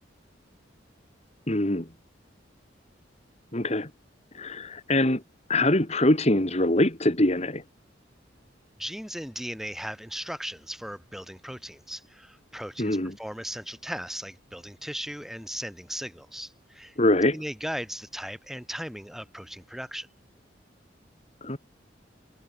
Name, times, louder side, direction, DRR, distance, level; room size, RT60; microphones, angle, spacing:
voice 1, 1.5-1.9 3.5-3.9 4.3-5.2 5.5-7.6 12.8-13.1 17.0-17.4 21.4-21.6, left 1 dB, 35° left, 3.0 m, -23 dB
voice 2, 8.8-17.0 17.3-20.1, equal, ahead, 4.5 m, -37 dB
head